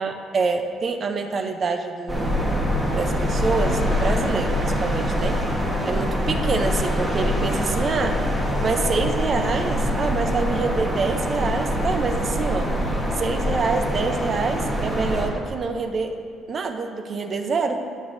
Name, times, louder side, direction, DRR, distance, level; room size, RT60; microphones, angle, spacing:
voice 1, 0.0-2.5 2.9-5.4 5.8-8.2 8.6-12.7 13.2-17.9, right 4 dB, 30° right, 6 dB, 0.6 m, -26 dB
sound 1, 2.1-15.3, equal, 15° right, 1.4 m, -24 dB
13.5 x 9.8 x 2.7 m, 2.2 s
cardioid pair, 175°, 0 cm